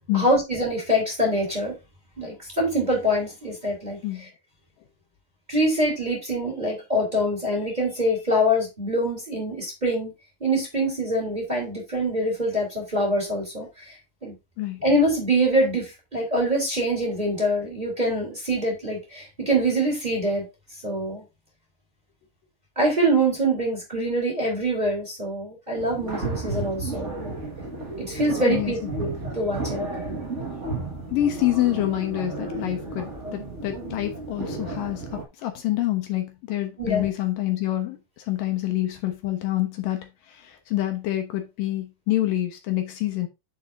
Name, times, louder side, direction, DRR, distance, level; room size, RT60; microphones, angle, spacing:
voice 1, 0.1-1.7 2.2-4.0 5.5-10.1 10.4-13.7 14.2-14.4 14.8-20.4 20.8-21.2 22.7-27.3 28.0-29.9 36.8-37.1, right 1 dB, 10° right, 3.4 m, -24 dB
sound 1, 25.8-35.2, right 2 dB, 45° right, 0.8 m, -33 dB
voice 2, 28.4-29.1 31.1-43.3, left 14 dB, 75° left, 2.6 m, -27 dB
8.8 x 7.2 x 2.6 m
omnidirectional pair, 4.1 m